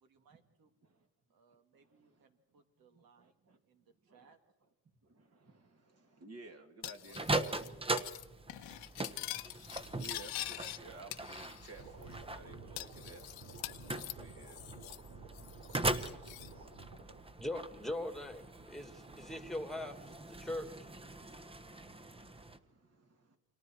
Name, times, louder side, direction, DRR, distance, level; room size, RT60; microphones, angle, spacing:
voice 1, 0.1-0.7 1.3-3.4 3.7-4.4 6.5-6.7 7.0-9.3, right 5 dB, 65° right, 6 dB, 2.8 m, -66 dB
voice 2, 1.7-2.2 2.9-3.6 4.0-4.3 5.0-7.2 10.0-13.2 14.1-14.6 21.1-23.4, right 3 dB, 40° right, 4 dB, 2.8 m, -55 dB
Cutlery silverware, 6.8-7.7 8.0-8.2 8.5-10.8 11.1-11.8 12.1-12.2 12.8-15.1 15.3-16.5, left 16 dB, 75° left, 1.0 m, -45 dB
sound 1, 7.1-22.6, right 2 dB, 15° right, 1.1 m, -41 dB
sound 2, 11.8-17.2, right 3 dB, 85° right, 4.1 m, -53 dB
voice 3, 17.4-20.9, left 1 dB, ahead, 9 dB, 2.0 m, -41 dB
29.0 x 24.5 x 4.7 m, 0.97 s
cardioid pair, 90°, 37 cm